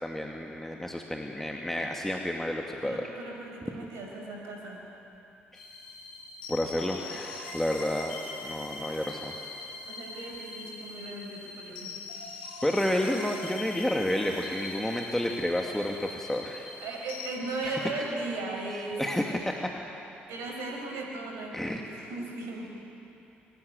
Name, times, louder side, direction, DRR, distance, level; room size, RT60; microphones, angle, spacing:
voice 1, 0.0-3.1 5.5-5.6 6.5-9.3 12.6-16.7 17.6-17.9 19.0-19.7 21.5-21.8, left 1 dB, 5° left, 1 dB, 2.4 m, -30 dB
voice 2, 2.8-4.8 9.8-12.0 16.8-19.0 20.3-22.7, right 2 dB, 65° right, 0 dB, 5.3 m, -37 dB
sound 1, 5.5-17.3, left 3 dB, 75° left, 3.4 m, -42 dB
26.0 x 23.0 x 9.6 m, 2.8 s
figure-of-eight pair, 45°, 5 cm